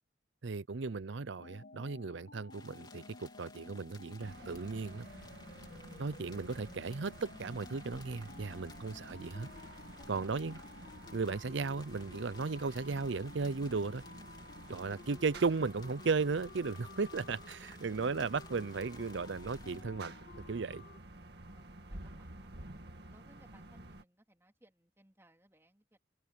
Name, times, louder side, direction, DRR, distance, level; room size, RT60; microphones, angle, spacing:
voice 1, 0.4-5.1 6.0-9.5 10.1-10.6 11.1-14.0 14.7-20.1 20.5-20.8, right 4 dB, 70° right, 0.6 m, -35 dB
sound 1, 1.4-21.0, left 3 dB, 45° left, 0.6 m, -54 dB
sound 2, 2.5-19.8, left 4 dB, 20° left, 3.7 m, -59 dB
sound 3, 4.2-24.0, right 1 dB, 55° right, 2.2 m, -51 dB
voice 2, 10.0-10.6 10.9-11.0 14.5-15.1 21.3-26.0, right 1 dB, 15° right, 3.7 m, -63 dB
head